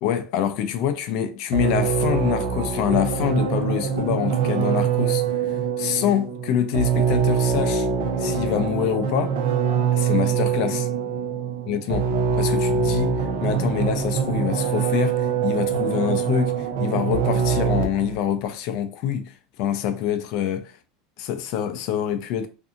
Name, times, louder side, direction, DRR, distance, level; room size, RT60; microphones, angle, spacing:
voice 1, 0.0-5.2 5.8-7.9 8.2-9.4 10.0-10.9 11.7-12.1 12.4-19.3 19.6-20.7 21.2-22.5, left 9 dB, 50° left, 0.4 m, -25 dB
sound 1, 1.5-18.2, right 6 dB, 80° right, 0.5 m, -24 dB
2.6 x 2.6 x 2.4 m
supercardioid pair, 170°, 0 cm